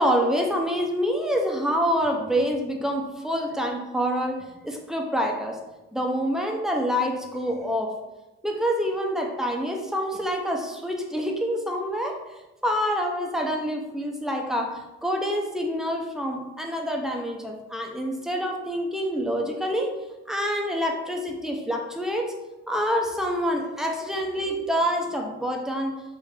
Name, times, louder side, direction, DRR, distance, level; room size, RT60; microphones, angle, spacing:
voice 1, 0.0-5.6 5.9-7.9 8.4-12.2 12.6-19.9 20.3-22.3 22.7-26.0, equal, ahead, 1 dB, 0.5 m, -26 dB
3.6 x 2.6 x 3.2 m, 1.0 s
cardioid pair, 90°, 30 cm